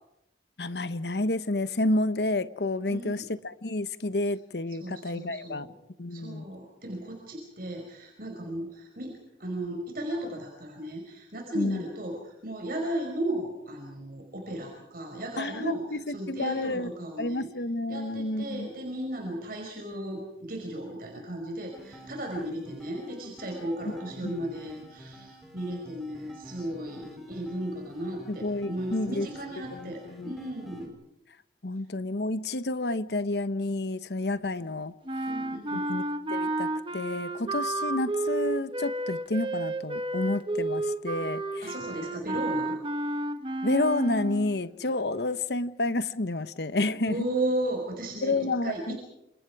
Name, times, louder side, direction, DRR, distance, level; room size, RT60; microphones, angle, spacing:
voice 1, 0.6-5.7 6.0-6.5 11.5-11.8 15.4-16.9 17.2-18.7 23.8-23.9 24.2-24.3 28.3-29.3 29.7-30.3 31.6-34.9 35.7-36.0 36.3-41.7 43.6-47.3 48.2-49.0, left 2 dB, 65° left, 1.1 m, -30 dB
voice 2, 2.9-3.2 4.8-5.7 6.1-17.5 17.9-30.9 35.3-35.9 41.2-41.3 41.6-42.8 47.1-48.4 48.6-49.0, right 1 dB, 55° right, 5.3 m, -35 dB
sound 1, 21.7-30.9, equal, ahead, 5.4 m, -49 dB
sound 2, 35.1-44.6, right 2 dB, 30° right, 1.5 m, -31 dB
29.0 x 27.5 x 4.8 m
head